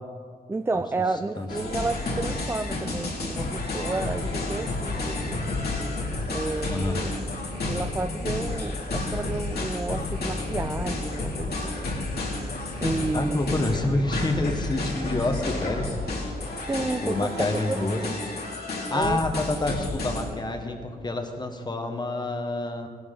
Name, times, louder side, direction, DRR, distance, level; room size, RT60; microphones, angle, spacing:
voice 1, 0.5-5.4 6.3-7.1 7.6-11.8 12.8-13.4 16.7-18.1 18.9-19.2, right 3 dB, 15° right, 9 dB, 0.3 m, -31 dB
sound 1, 1.5-20.3, left 2 dB, 80° left, 2.5 m, -31 dB
voice 2, 6.7-7.0 13.1-16.3 16.8-18.0 18.7-22.9, left 2 dB, 25° left, 5 dB, 1.2 m, -28 dB
sound 2, 13.4-18.5, equal, 70° right, 2.1 m, -44 dB
18.5 x 12.0 x 3.8 m, 2.1 s
wide cardioid pair, 140°, 16 cm